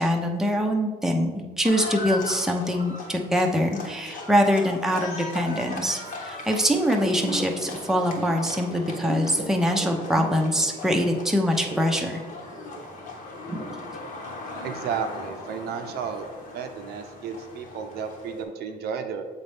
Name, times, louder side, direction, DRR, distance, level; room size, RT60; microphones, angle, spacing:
voice 1, 0.0-12.2, equal, ahead, 1 dB, 0.7 m, -24 dB
Livestock farm animals working animals, 1.6-18.4, left 2 dB, 55° left, 1.2 m, -38 dB
sound 1, 6.7-11.1 11.4-14.9 15.3-15.4, right 2 dB, 35° right, 0.9 m, -36 dB
voice 2, 14.6-16.3 16.5-19.2, right 6 dB, 70° right, 6 dB, 0.6 m, -33 dB
7.2 x 4.1 x 3.4 m, 1.4 s
cardioid pair, 110°, 17 cm